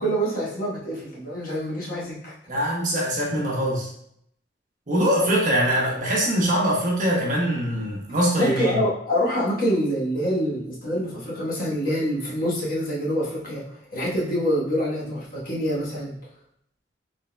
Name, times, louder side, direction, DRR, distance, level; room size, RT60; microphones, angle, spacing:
voice 1, 0.0-2.3 8.4-16.1, equal, 50° left, -6 dB, 1.2 m, -26 dB
voice 2, 2.5-3.9 4.9-8.8, equal, 45° right, -3 dB, 1.0 m, -23 dB
3.9 x 3.8 x 2.2 m, 0.70 s
head